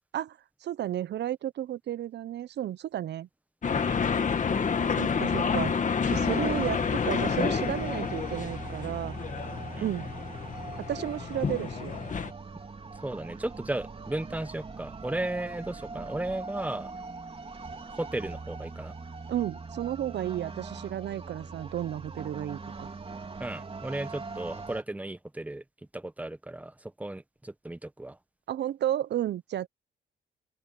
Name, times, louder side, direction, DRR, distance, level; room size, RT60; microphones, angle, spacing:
voice 1, 0.1-3.3 5.0-5.8 6.1-9.2 9.8-10.1 10.8-11.9 19.3-22.9 28.5-29.7, right 11 dB, 60° right, 0.7 m, -33 dB
sound 1, 3.6-12.3, left 6 dB, 40° left, 1.9 m, -29 dB
sound 2, 6.0-24.8, right 4 dB, 30° right, 3.5 m, -41 dB
voice 2, 12.9-16.9 18.0-18.9 23.4-25.6 25.9-28.2, right 1 dB, 5° right, 1.0 m, -35 dB
open air
cardioid pair, 90°, 20 cm